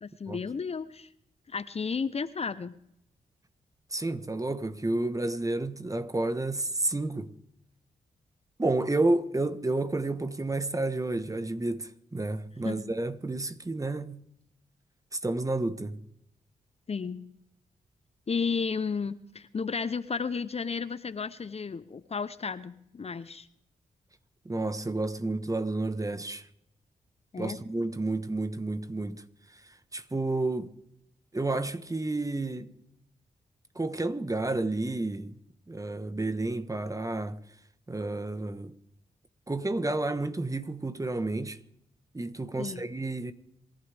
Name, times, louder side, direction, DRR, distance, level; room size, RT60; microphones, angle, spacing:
voice 1, 0.0-1.1 1.5-2.8 12.6-12.9 16.9-17.3 18.3-23.5 27.3-27.6 42.6-42.8, left 5 dB, 40° left, 0.8 m, -33 dB
voice 2, 3.9-7.3 8.6-14.2 15.1-16.0 24.4-26.5 27.4-29.2 29.9-30.7 31.3-32.7 33.7-35.3 35.7-37.4 37.9-38.7 39.5-41.6 42.1-43.3, right 2 dB, 20° right, 1.3 m, -30 dB
27.5 x 11.5 x 3.5 m
supercardioid pair, 45°, 15 cm